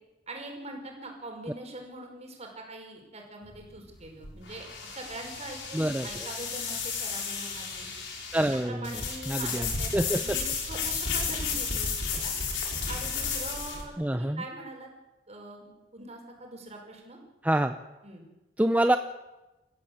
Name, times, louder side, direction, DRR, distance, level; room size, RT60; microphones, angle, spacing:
voice 1, 0.3-7.9 8.6-12.3 12.9-14.9 15.3-17.2 18.0-18.2, right 2 dB, 40° right, 2 dB, 5.3 m, -43 dB
sound 1, 3.4-13.8, left 5 dB, 90° left, 5.5 m, -33 dB
voice 2, 5.7-6.1 8.3-10.4 14.0-14.4 17.4-17.8 18.6-19.0, right 1 dB, 10° right, 7 dB, 0.7 m, -27 dB
27.5 x 14.5 x 8.0 m, 1.1 s
head